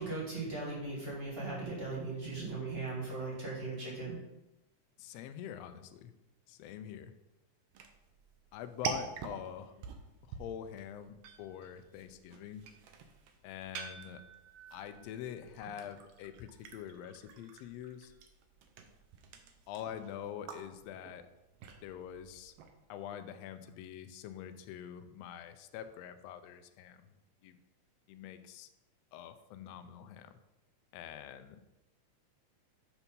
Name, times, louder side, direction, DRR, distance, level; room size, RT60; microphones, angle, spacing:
voice 1, 0.0-4.1, right 3 dB, 25° right, -4 dB, 1.7 m, -38 dB
voice 2, 5.0-6.1 6.5-7.1 8.5-9.8 10.3-12.7 13.4-14.2 14.7-18.1 19.7-21.2 21.8-22.5 22.9-27.1 27.4-27.6 28.1-28.7 29.1-30.3 30.9-31.6, left 10 dB, 85° left, 9 dB, 1.4 m, -45 dB
sound 1, 7.7-22.8, right 6 dB, 80° right, 1.3 m, -47 dB
7.0 x 4.4 x 5.3 m, 0.95 s
omnidirectional pair, 3.5 m